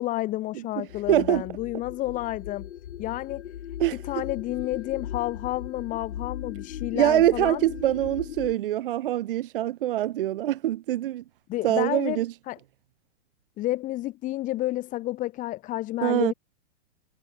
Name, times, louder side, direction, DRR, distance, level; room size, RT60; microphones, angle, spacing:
voice 1, 0.0-2.7 3.0-3.5 3.9-7.6 11.5-12.6 13.6-16.3, left 16 dB, 20° left, 6.7 m, -30 dB
sound 1, 0.9-8.5, left 10 dB, 70° left, 4.0 m, -38 dB
voice 2, 1.1-1.4 3.8-4.0 6.9-11.2 11.6-12.3 16.0-16.3, right 13 dB, 45° right, 1.0 m, -24 dB
hypercardioid pair, 170°, 37 cm